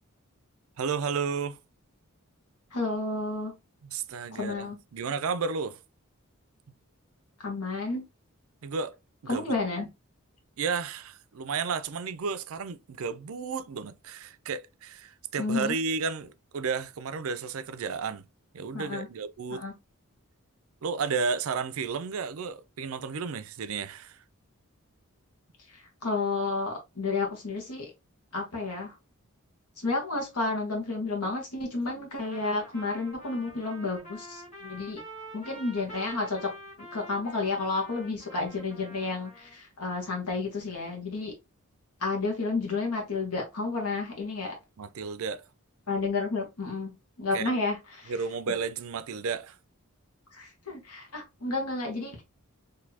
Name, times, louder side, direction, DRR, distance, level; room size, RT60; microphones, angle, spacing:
voice 1, 0.8-1.6 3.8-5.8 8.6-9.0 9.2-9.4 10.6-18.3 18.5-19.6 20.8-24.2 44.8-45.4 47.3-47.5 48.1-49.6, right 5 dB, 70° right, 0.5 m, -32 dB
voice 2, 2.7-3.5 4.3-4.8 7.4-8.0 9.3-9.9 15.4-15.8 18.7-19.1 19.5-19.7 25.7-27.9 28.3-28.9 29.8-35.0 35.3-36.5 36.9-41.3 42.0-44.6 45.9-46.9 47.2-48.1 50.3-52.2, left 3 dB, 85° left, 1.1 m, -31 dB
Trumpet, 32.2-39.6, right 1 dB, 30° left, 1.4 m, -47 dB
4.0 x 2.7 x 2.8 m
head